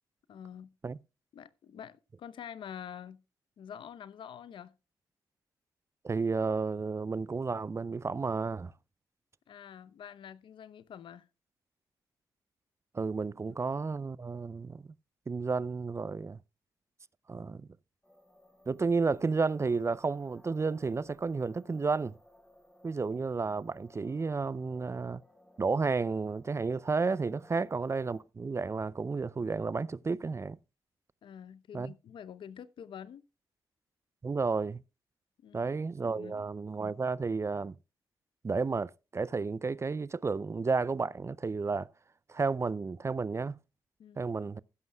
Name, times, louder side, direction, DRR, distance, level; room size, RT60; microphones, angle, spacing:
voice 1, 0.3-0.7 1.3-3.2 3.6-4.7 9.5-11.3 27.5-27.7 31.2-33.2 35.4-35.7 36.1-36.4 44.0-44.2, left 8 dB, 70° left, 0.8 m, -47 dB
voice 2, 6.0-8.7 12.9-14.8 15.3-16.4 17.3-17.7 18.7-22.2 22.8-25.2 25.6-30.6 31.7-31.9 34.2-34.8 35.5-37.8 38.4-41.9 42.3-43.6 44.2-44.6, right 4 dB, 30° right, 0.5 m, -32 dB
sound 1, 18.0-28.2, left 1 dB, 10° left, 5.0 m, -60 dB
15.5 x 12.0 x 2.3 m
supercardioid pair, 45°, 9 cm